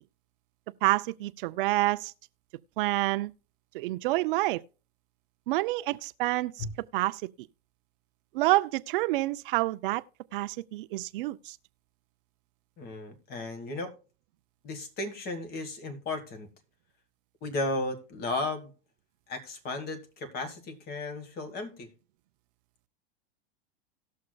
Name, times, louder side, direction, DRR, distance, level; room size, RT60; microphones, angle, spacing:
voice 1, 0.8-2.1 2.8-3.3 3.7-4.6 5.5-6.7 6.9-7.2 8.3-10.0 10.3-11.6, right 19 dB, 60° right, 0.5 m, -28 dB
voice 2, 12.8-13.9 14.6-16.5 17.4-18.7 19.3-21.9, left 2 dB, 30° left, 1.6 m, -34 dB
18.5 x 6.4 x 2.3 m
supercardioid pair, 140°, 31 cm